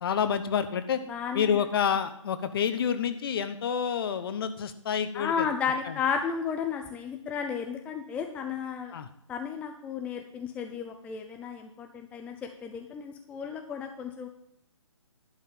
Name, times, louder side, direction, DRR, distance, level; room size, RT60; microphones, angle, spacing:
voice 1, 0.0-1.0 1.3-5.5 5.9-6.0 8.9-9.1, left 7 dB, 45° left, 11 dB, 1.0 m, -28 dB
voice 2, 1.1-1.6 5.1-8.9 9.3-14.3, left 6 dB, 10° left, 4 dB, 0.5 m, -33 dB
11.5 x 5.6 x 7.2 m, 0.74 s
hypercardioid pair, 145°, 17 cm